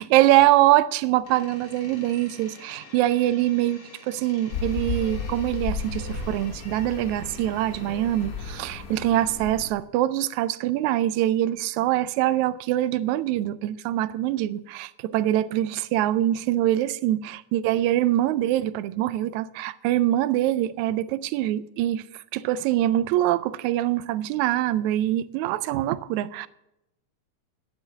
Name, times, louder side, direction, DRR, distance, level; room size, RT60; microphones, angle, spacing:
voice 1, 0.0-22.0 22.3-26.5, right 14 dB, 80° right, 1.9 m, -24 dB
Door, 1.2-9.7, left 3 dB, 90° left, 4.4 m, -49 dB
sound 1, 4.5-9.7, left 4 dB, 50° left, 1.1 m, -34 dB
10.0 x 8.9 x 6.8 m
omnidirectional pair, 3.4 m